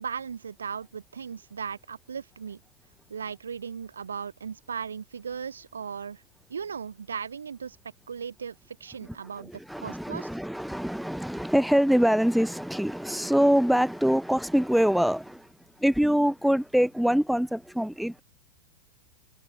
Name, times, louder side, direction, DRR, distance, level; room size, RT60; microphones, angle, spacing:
voice 1, 0.0-2.6 3.1-6.2 6.5-7.8 8.1-9.5 9.8-10.3, right 6 dB, 70° right, 1.5 m, -37 dB
voice 2, 9.4-15.5 15.8-18.2, equal, ahead, 1.3 m, -24 dB
open air
figure-of-eight pair, 90°, 0 cm